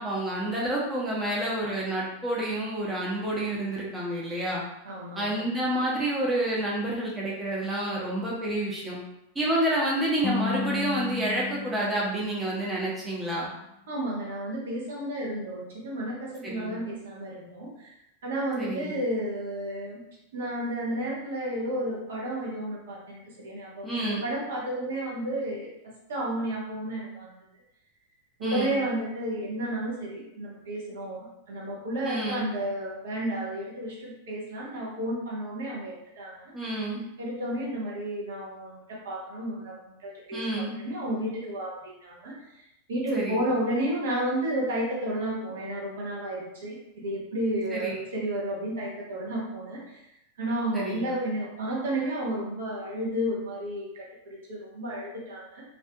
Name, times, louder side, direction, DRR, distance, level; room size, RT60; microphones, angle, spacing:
voice 1, 0.0-4.6 5.2-9.0 9.3-13.5 16.4-16.7 18.6-18.9 23.8-24.2 28.4-28.8 32.0-32.4 36.5-37.0 40.3-40.7 43.1-43.4 47.7-48.0 50.7-51.0, right 1 dB, 15° right, -5 dB, 0.6 m, -29 dB
voice 2, 4.8-5.5 13.9-17.9 18.2-20.0 20.3-25.7 26.1-27.4 28.4-36.5 37.2-42.6 42.9-50.0 50.4-55.6, right 1 dB, 60° right, -4 dB, 0.7 m, -32 dB
sound 1, 10.2-13.3, left 5 dB, 25° left, 0.4 m, -34 dB
2.4 x 2.4 x 2.3 m, 0.85 s
figure-of-eight pair, 90°, 0 cm